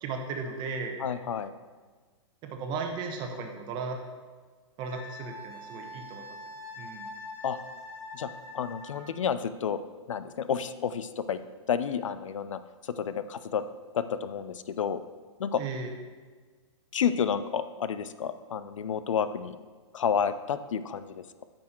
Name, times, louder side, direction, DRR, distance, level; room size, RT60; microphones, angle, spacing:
voice 1, 0.0-1.0 2.4-4.0 4.8-6.4 6.8-7.1 15.6-15.9, right 4 dB, 30° right, 4 dB, 1.1 m, -36 dB
voice 2, 1.0-1.5 7.4-7.6 8.1-8.3 8.5-9.8 10.1-11.4 11.7-13.6 13.9-15.0 15.4-15.6 16.9-19.6 19.9-21.5, left 7 dB, 90° left, 13 dB, 0.5 m, -30 dB
Wind instrument woodwind instrument, 4.8-9.1, left 2 dB, 15° left, 1.3 m, -43 dB
8.5 x 6.2 x 4.5 m, 1.5 s
hypercardioid pair, 145°, 16 cm